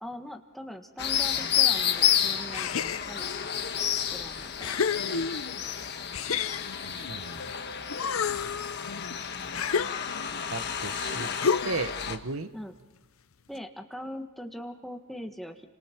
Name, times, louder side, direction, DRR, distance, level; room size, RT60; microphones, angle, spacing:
voice 1, 0.0-3.3 4.1-4.8 5.1-5.4 12.5-12.7 13.5-15.6, equal, ahead, 4 dB, 1.5 m, -41 dB
sound 1, 1.0-12.2, left 9 dB, 50° left, 1.4 m, -30 dB
sound 2, 2.5-3.4 4.0-4.1 4.6-5.6 6.1-7.6 7.9-10.4 11.4-12.0, left 6 dB, 70° left, 0.7 m, -31 dB
voice 2, 6.9-7.4 10.5-11.3 11.6-12.5, right 3 dB, 65° right, 11 dB, 1.1 m, -35 dB
29.5 x 26.5 x 4.5 m, 1.0 s
head